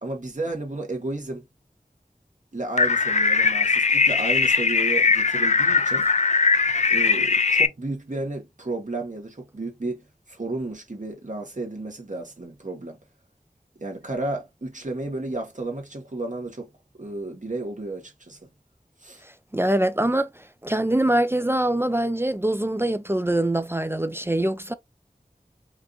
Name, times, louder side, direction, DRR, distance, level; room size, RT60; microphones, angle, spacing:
voice 1, 0.0-1.4 2.5-6.1 6.9-13.0 13.8-16.7 17.0-18.4 19.0-19.2, right 2 dB, 55° right, 1.2 m, -32 dB
sound 1, 2.8-7.7, left 4 dB, 50° left, 0.4 m, -20 dB
voice 2, 19.5-24.7, right 1 dB, 15° right, 0.4 m, -24 dB
4.6 x 2.5 x 2.4 m
wide cardioid pair, 50°, 15 cm